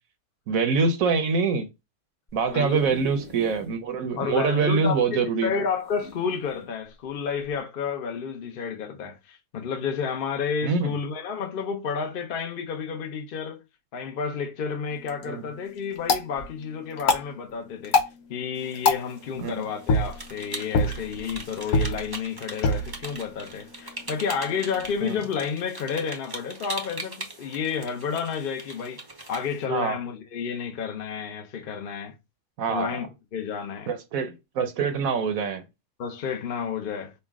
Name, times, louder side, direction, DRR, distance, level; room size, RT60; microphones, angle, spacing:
voice 1, 0.5-1.7 2.3-5.6 10.6-10.9 15.3-15.4 19.4-19.6 25.0-25.2 29.7-30.0 32.6-33.0 33.9-35.6, right 5 dB, 70° right, 1.0 m, -25 dB
sound 1, 2.3-3.8 4.3-4.4 4.6-4.7 5.8-6.7 7.4-7.6, left 2 dB, 30° left, 1.2 m, -45 dB
voice 2, 4.2-13.6 13.9-18.0 18.3-29.0 29.3-32.1 32.7-33.9 36.0-37.1, left 6 dB, 45° left, 0.8 m, -31 dB
sound 2, 14.9-25.0, left 3 dB, 75° left, 1.3 m, -29 dB
sound 3, 18.5-29.6, right 2 dB, 25° right, 0.5 m, -41 dB
5.5 x 2.2 x 3.5 m
omnidirectional pair, 1.6 m